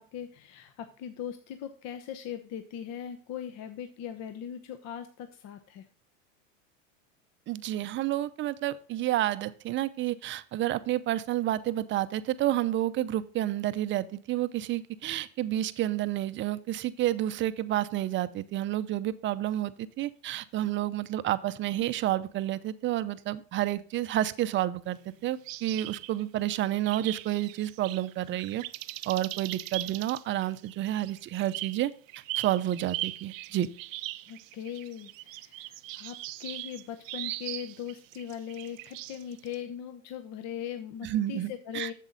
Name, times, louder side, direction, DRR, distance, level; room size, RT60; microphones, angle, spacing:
voice 1, 0.0-5.9 34.3-41.9, left 9 dB, 40° left, 9 dB, 0.9 m, -40 dB
voice 2, 7.5-28.6 29.1-31.9 32.4-33.7 41.0-41.9, right 13 dB, 30° right, 14 dB, 0.6 m, -30 dB
sound 1, 25.4-26.4 26.8-39.5, right 17 dB, 75° right, 0.6 m, -39 dB
8.0 x 7.4 x 3.8 m, 0.43 s
hypercardioid pair, 110°, 39 cm